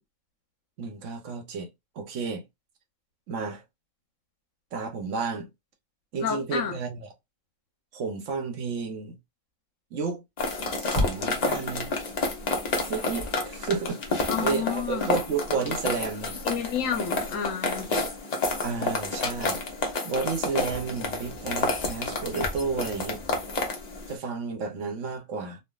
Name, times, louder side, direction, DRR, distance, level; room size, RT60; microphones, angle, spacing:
voice 1, 0.8-1.7 2.0-2.4 3.3-3.6 4.7-5.5 6.1-7.1 7.9-9.2 9.9-10.2 10.8-11.9 12.9-16.4 18.6-19.6 20.0-23.2 24.1-25.6, right 5 dB, 70° right, 1.1 m, -31 dB
voice 2, 6.2-6.8 14.3-15.1 16.4-17.9, left 8 dB, 80° left, 1.1 m, -30 dB
sound 1, 10.4-24.1, left 3 dB, 40° left, 0.7 m, -30 dB
3.3 x 2.3 x 2.2 m
omnidirectional pair, 1.3 m